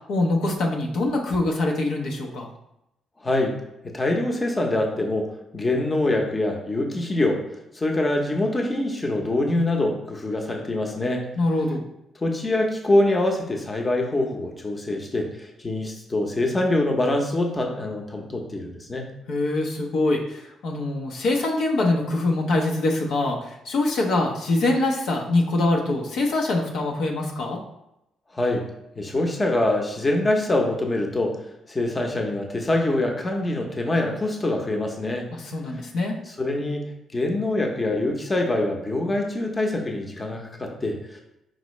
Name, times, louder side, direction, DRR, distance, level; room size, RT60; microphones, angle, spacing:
voice 1, 0.1-2.5 11.4-11.8 19.3-27.6 35.3-36.2, left 2 dB, 75° left, 0 dB, 0.7 m, -24 dB
voice 2, 3.2-3.5 3.9-7.4 7.7-11.2 12.2-19.1 28.3-28.6 29.0-31.4 31.7-35.3 36.3-41.2, left 2 dB, 25° left, 2 dB, 0.8 m, -24 dB
5.1 x 3.0 x 3.1 m, 0.85 s
cardioid pair, 90°, 0 cm